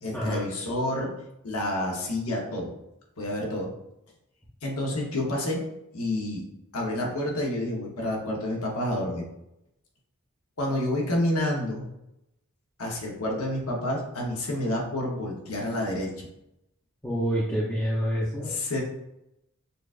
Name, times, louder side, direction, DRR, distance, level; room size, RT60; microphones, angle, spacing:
voice 1, 0.0-1.1 1.4-2.7 3.2-3.7 4.6-5.6 5.9-6.4 6.7-9.2 10.6-11.9 12.8-16.3 18.5-18.8, left 1 dB, 80° left, -1 dB, 0.9 m, -29 dB
voice 2, 17.0-18.6, equal, 10° left, -8 dB, 0.7 m, -27 dB
6.6 x 2.3 x 2.4 m, 0.85 s
head